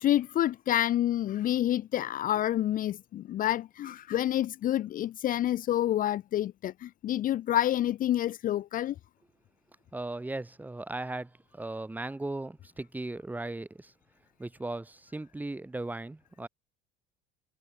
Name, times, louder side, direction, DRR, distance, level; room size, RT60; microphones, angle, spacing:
voice 1, 0.0-8.9, left 12 dB, 40° left, 0.9 m, -28 dB
voice 2, 9.9-13.9 14.4-16.5, right 2 dB, 10° right, 2.7 m, -37 dB
cardioid pair, 145°, 21 cm